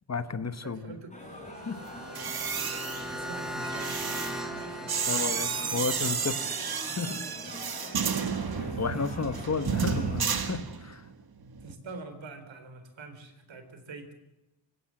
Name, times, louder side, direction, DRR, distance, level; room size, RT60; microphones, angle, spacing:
voice 1, 0.1-0.9 1.6-1.9 5.1-6.4 7.0-7.3 8.8-11.0, left 4 dB, 35° left, 12 dB, 1.2 m, -32 dB
voice 2, 0.6-1.1 3.0-6.4 8.1-8.4 11.6-14.1, right 3 dB, 85° right, 8 dB, 4.1 m, -45 dB
sound 1, 1.1-10.2, left 1 dB, 15° left, 4.6 m, -44 dB
sound 2, 1.5-6.5, equal, ahead, 2.3 m, -39 dB
sound 3, 2.0-11.1 11.4-11.7, right 6 dB, 55° right, 1.6 m, -32 dB
25.0 x 16.5 x 7.7 m, 0.95 s
wide cardioid pair, 150°, 44 cm